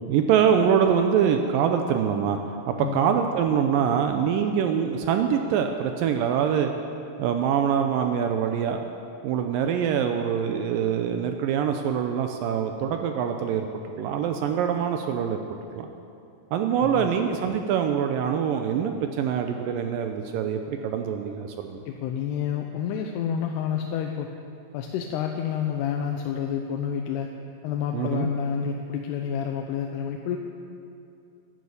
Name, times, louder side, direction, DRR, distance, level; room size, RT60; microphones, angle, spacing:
voice 1, 0.1-2.4 2.7-6.7 7.2-8.9 9.2-13.7 14.0-15.9 16.5-21.8 27.9-28.3, right 8 dB, 85° right, 5 dB, 2.0 m, -24 dB
voice 2, 2.8-3.2 16.8-17.1 21.9-24.3 24.7-27.3 27.6-30.4, left 8 dB, 85° left, 3 dB, 2.8 m, -29 dB
12.5 x 11.5 x 8.4 m, 2.6 s
omnidirectional pair, 4.7 m